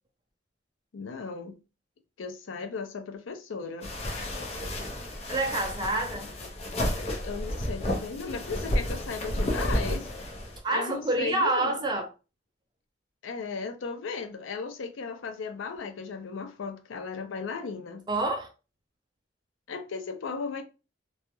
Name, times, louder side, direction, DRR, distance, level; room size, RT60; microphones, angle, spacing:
voice 1, 0.9-1.6 2.2-3.9 7.2-10.1 10.7-11.8 13.2-18.1 19.7-20.6, left 5 dB, 85° left, 0.4 m, -36 dB
sound 1, 3.8-10.6, left 1 dB, 35° left, 0.5 m, -31 dB
voice 2, 5.3-6.3 10.6-12.1 18.1-18.5, right 2 dB, 20° right, 0.5 m, -27 dB
2.2 x 2.0 x 2.9 m
head